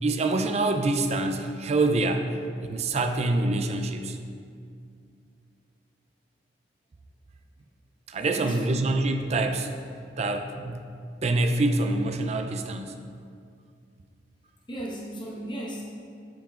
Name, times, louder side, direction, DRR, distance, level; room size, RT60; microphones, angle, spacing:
voice 1, 0.0-2.3 2.6-4.2 8.1-9.7 10.2-10.9 11.2-13.0, right 2 dB, 35° right, 6 dB, 0.4 m, -26 dB
voice 2, 8.3-8.8 14.7-15.8, right 1 dB, 25° left, -4 dB, 1.1 m, -36 dB
8.5 x 5.9 x 2.4 m, 2.3 s
head